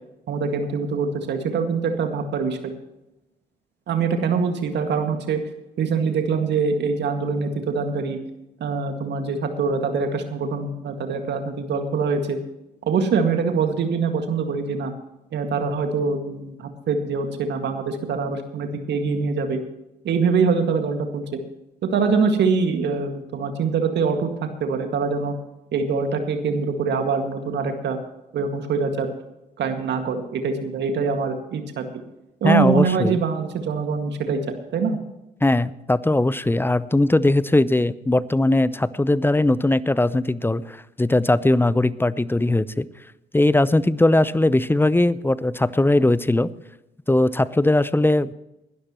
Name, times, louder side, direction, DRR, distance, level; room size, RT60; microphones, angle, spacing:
voice 1, 0.3-2.7 3.9-5.4 5.8-8.2 8.6-12.4 12.8-14.9 15.3-19.6 20.0-21.4 21.8-24.3 24.6-25.3 25.7-28.0 28.3-29.1 29.6-31.8 32.4-34.4 34.7-35.0, right 5 dB, 65° right, 6 dB, 1.9 m, -24 dB
voice 2, 32.4-33.2 35.4-42.9 43.3-46.5 47.1-48.3, left 2 dB, 10° left, 18 dB, 0.7 m, -19 dB
20.0 x 12.5 x 3.0 m, 0.95 s
hypercardioid pair, 50°, 20 cm